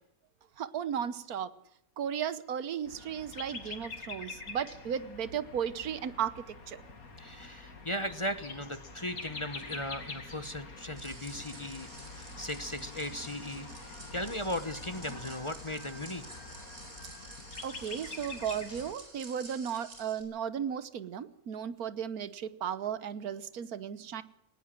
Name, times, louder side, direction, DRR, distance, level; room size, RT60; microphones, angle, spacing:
voice 1, 0.6-1.5 2.0-6.8 17.6-24.2, right 8 dB, 85° right, 15 dB, 1.5 m, -35 dB
sound 1, 2.8-18.9, left 3 dB, 75° left, 2.8 m, -46 dB
voice 2, 7.2-11.9 12.2-16.4, left 1 dB, 25° left, 12 dB, 1.0 m, -37 dB
sound 2, 11.0-20.2, right 2 dB, 70° right, 4.7 m, -50 dB
19.0 x 19.0 x 7.5 m, 0.76 s
omnidirectional pair, 1.5 m